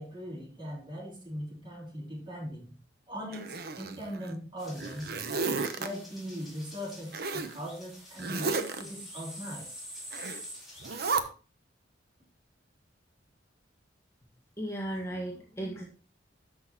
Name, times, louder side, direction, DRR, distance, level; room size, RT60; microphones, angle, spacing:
voice 1, 0.0-2.8 3.1-5.1 5.8-9.8, equal, 30° right, -2 dB, 4.0 m, -40 dB
Zipper (clothing), 3.3-4.3 4.8-5.9 7.1-7.5 8.2-8.8 10.1-10.4 10.8-11.2, right 4 dB, 55° right, 0.9 m, -32 dB
sound 1, 4.6-11.2, equal, ahead, 5.0 m, -47 dB
voice 2, 14.6-15.8, right 1 dB, 15° left, -1 dB, 1.6 m, -35 dB
13.0 x 6.4 x 2.9 m, 0.37 s
head